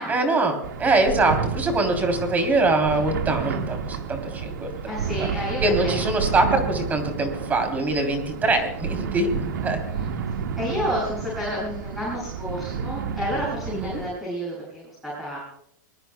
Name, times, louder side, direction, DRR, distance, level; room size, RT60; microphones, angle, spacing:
voice 1, 0.1-5.3 5.6-9.8 13.7-14.0, right 2 dB, 15° right, 5 dB, 3.4 m, -23 dB
sound 1, 0.6-14.1, right 6 dB, 90° right, 1.8 m, -30 dB
voice 2, 4.8-5.9 9.8-10.0 10.6-15.4, equal, ahead, -7 dB, 7.5 m, -30 dB
23.5 x 21.0 x 2.3 m, 0.77 s
supercardioid pair, 140°, 10 cm